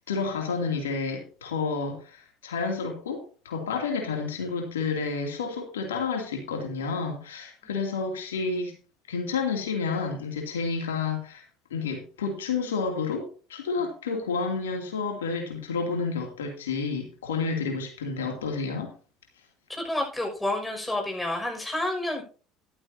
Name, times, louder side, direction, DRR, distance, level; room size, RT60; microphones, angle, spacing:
voice 1, 0.1-8.8 9.1-11.4 11.7-18.9, left 4 dB, 90° left, 2 dB, 2.8 m, -30 dB
voice 2, 19.7-22.2, left 1 dB, 10° left, 2 dB, 6.1 m, -29 dB
14.0 x 12.5 x 2.8 m, 0.38 s
hypercardioid pair, 70°, 0 cm